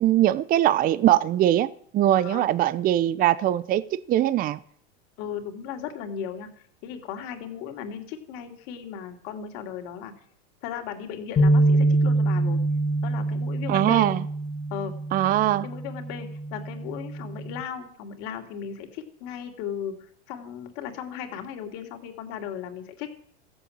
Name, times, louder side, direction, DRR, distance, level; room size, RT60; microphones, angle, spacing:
voice 1, 0.0-4.6 13.7-14.2 15.1-15.7, right 13 dB, 25° right, 18 dB, 0.6 m, -21 dB
voice 2, 2.1-2.5 5.2-6.5 6.8-10.1 10.6-12.6 13.0-14.1 14.7-15.0 15.6-20.0 20.3-23.1, left 8 dB, 55° left, 5 dB, 3.2 m, -36 dB
sound 1, 11.4-17.6, right 2 dB, 20° left, 2.0 m, -25 dB
14.5 x 8.0 x 8.8 m, 0.62 s
supercardioid pair, 130°, 33 cm